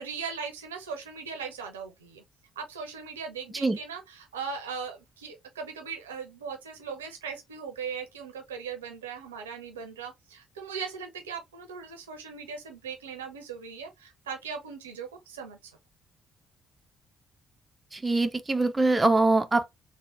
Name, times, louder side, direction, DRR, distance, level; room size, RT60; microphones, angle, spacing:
voice 1, 0.0-2.2 2.6-15.7, right 6 dB, 80° right, 0.6 m, -39 dB
voice 2, 17.9-19.7, right 3 dB, 20° right, 0.4 m, -23 dB
3.7 x 2.1 x 3.2 m
figure-of-eight pair, 45°, 0 cm